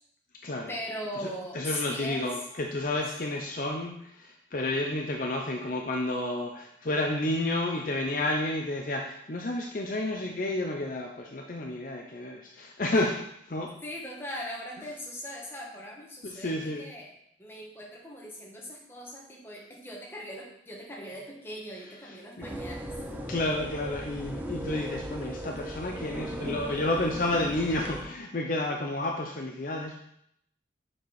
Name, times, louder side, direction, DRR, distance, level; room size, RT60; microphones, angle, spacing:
voice 1, 0.7-2.3 13.8-17.1 17.4-23.0, equal, 10° left, -3 dB, 1.4 m, -40 dB
voice 2, 1.5-13.2 13.5-13.7 16.2-16.8 22.0-22.5 23.1-30.0, left 1 dB, 45° left, 1 dB, 0.6 m, -31 dB
sound 1, 22.4-28.0, equal, 10° right, 0.5 m, -37 dB
6.6 x 4.5 x 4.8 m, 0.74 s
head